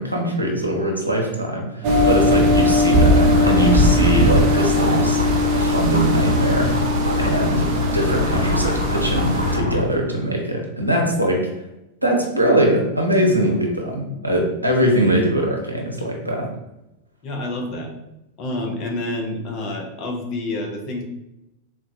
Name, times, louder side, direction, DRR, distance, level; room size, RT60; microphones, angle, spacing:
voice 1, 0.0-5.2 5.5-6.7 7.2-11.5 12.0-16.5, right 1 dB, 85° right, 0 dB, 0.6 m, -21 dB
sound 1, 1.8-9.6, left 1 dB, 45° right, 0.4 m, -19 dB
sound 2, 3.2-9.8, left 1 dB, 85° left, 0.4 m, -24 dB
voice 2, 17.2-17.9 18.4-21.0, left 2 dB, 40° left, 2 dB, 0.6 m, -28 dB
3.8 x 2.2 x 2.6 m, 0.91 s
figure-of-eight pair, 90°, 0 cm